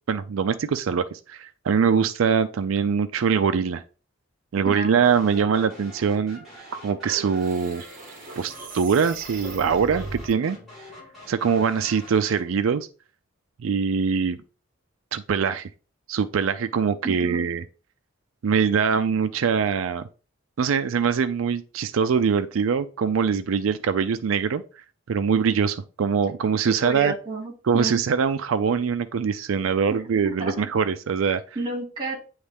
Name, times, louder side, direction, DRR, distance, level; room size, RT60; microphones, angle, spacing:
voice 1, 0.1-3.8 4.5-6.4 6.8-7.8 8.4-10.6 11.3-12.9 13.6-14.4 15.1-15.7 16.1-17.6 18.4-20.0 20.6-24.6 25.1-27.1 27.7-31.4, right 6 dB, 85° right, 0.4 m, -23 dB
voice 2, 4.6-5.7 17.0-17.5 26.7-27.9 29.9-30.5 31.6-32.2, right 2 dB, 25° right, 2.3 m, -32 dB
sound 1, 5.0-12.6, equal, ahead, 3.3 m, -45 dB
sound 2, 6.6-10.3, right 4 dB, 45° right, 0.9 m, -39 dB
9.4 x 3.2 x 3.4 m
head